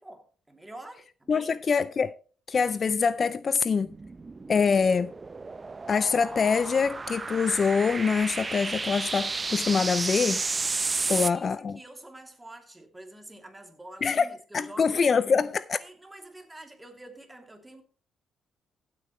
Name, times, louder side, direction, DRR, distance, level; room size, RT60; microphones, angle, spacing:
voice 1, 0.0-1.5 11.0-15.0 15.8-17.8, right 1 dB, 10° right, 2.8 m, -47 dB
voice 2, 1.3-2.1 2.5-3.9 4.5-5.1 5.9-10.4 11.1-11.8 14.0-14.3 14.5-15.8, left 5 dB, 45° left, 0.4 m, -24 dB
sound 1, 3.8-11.3, right 3 dB, 25° right, 0.6 m, -32 dB
15.5 x 8.4 x 3.1 m
cardioid pair, 90°, 0 cm